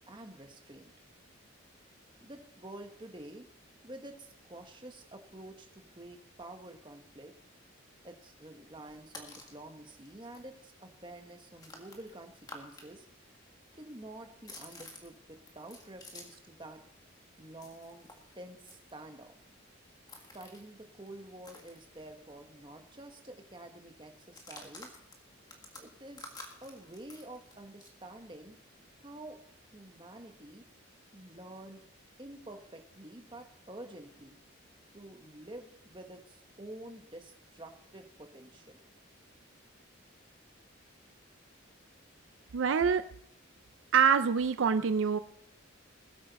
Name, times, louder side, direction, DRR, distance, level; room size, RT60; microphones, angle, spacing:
voice 1, 0.1-0.9 2.2-3.5 3.8-7.3 8.0-13.1 13.7-16.8 17.4-18.1 18.3-19.3 20.3-25.0 25.8-26.3 26.6-28.6 29.0-29.4 29.7-30.6 31.1-31.8 32.2-34.4 34.9-38.8, right 1 dB, 25° right, 4 dB, 1.3 m, -49 dB
sound 1, 8.8-9.6 10.0-10.1 10.3-12.9 13.1-16.5 16.8-22.4 22.7-22.8 23.1-23.5 24.2-28.0, left 2 dB, 20° left, 1.7 m, -52 dB
voice 2, 42.5-43.1 43.9-45.2, right 6 dB, 70° right, 11 dB, 0.4 m, -25 dB
20.5 x 8.6 x 4.2 m, 0.71 s
head